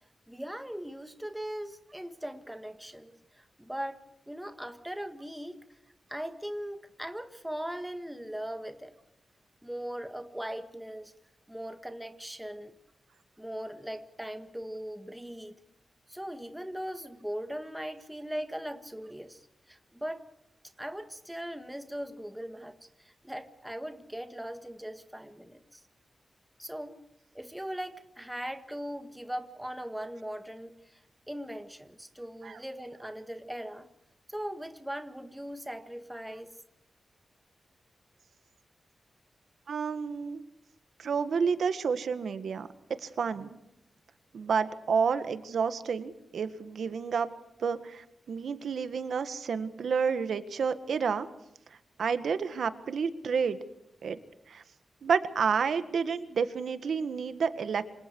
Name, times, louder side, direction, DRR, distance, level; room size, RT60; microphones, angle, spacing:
voice 1, 0.3-4.0 4.3-5.6 6.1-8.9 9.6-11.1 11.5-12.7 13.4-15.6 16.1-19.4 19.7-20.2 20.8-25.8 26.6-27.0 27.3-31.0 31.3-33.9 34.3-36.6, equal, 5° right, 8 dB, 1.8 m, -39 dB
voice 2, 39.7-40.4 41.0-42.7 43.0-43.6 44.3-47.3 47.6-51.3 52.0-53.6 54.0-54.2 54.5-54.6 55.0-57.9, right 6 dB, 85° right, 11 dB, 1.7 m, -30 dB
27.5 x 26.5 x 4.7 m, 0.79 s
wide cardioid pair, 145°, 0 cm